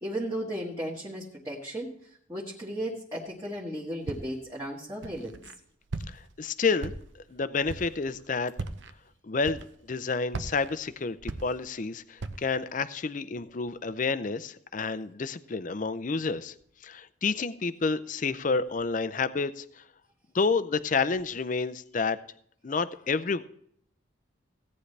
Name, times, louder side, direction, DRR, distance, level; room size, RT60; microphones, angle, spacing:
voice 1, 0.0-5.4, right 1 dB, 15° right, -5 dB, 1.6 m, -35 dB
Walk footsteps, 4.1-4.5 5.0-5.5 5.9-6.4 6.8-7.3 7.6-8.0 8.5-8.9 9.4-9.9 10.3-11.8 12.2-12.6, right 3 dB, 65° right, 0.7 m, -38 dB
voice 2, 6.1-6.9 7.3-8.5 9.2-9.6 9.9-16.5 16.8-19.6 20.3-22.2 22.6-23.4, left 4 dB, 40° left, 14 dB, 0.5 m, -29 dB
17.0 x 9.5 x 3.3 m, 0.67 s
head